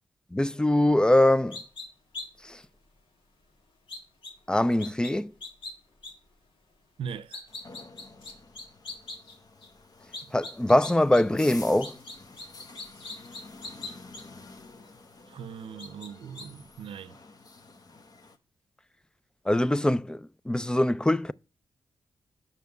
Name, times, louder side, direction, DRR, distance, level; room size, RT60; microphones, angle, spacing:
voice 1, 0.3-1.6 2.4-2.6 4.5-5.3 10.3-11.9 19.5-21.3, left 1 dB, 10° left, 0.3 m, -23 dB
sound 1, 1.5-1.8 2.1-2.2 2.6-2.7 3.9-4.3 4.8-5.1 5.4-5.7 6.0-6.1 7.1-9.7 10.1-11.2 11.5-14.2 14.8-14.9 15.8-16.1 16.3-16.4, left 3 dB, 75° left, 2.0 m, -40 dB
voice 2, 7.0-7.5 10.2-10.3 15.3-17.2, right 7 dB, 80° right, 0.6 m, -40 dB
sound 2, 7.5-18.4, left 3 dB, 45° left, 1.0 m, -50 dB
7.1 x 5.7 x 6.6 m
cardioid pair, 75°, 9 cm